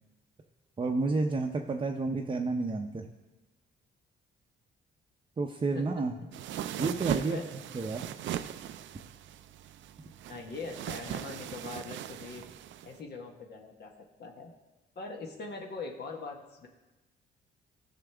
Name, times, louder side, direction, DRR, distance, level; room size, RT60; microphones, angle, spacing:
voice 1, 0.8-3.1 5.4-6.1 6.8-7.4 7.7-8.0, right 3 dB, 25° right, 1 dB, 0.7 m, -30 dB
sound 1, 6.3-13.0, right 11 dB, 70° right, 0.5 m, -38 dB
voice 2, 10.3-12.4 12.8-13.9 14.2-14.5 14.9-16.7, left 3 dB, 55° left, 1 dB, 1.3 m, -41 dB
14.5 x 5.9 x 3.4 m, 1.1 s
cardioid pair, 90°, 20 cm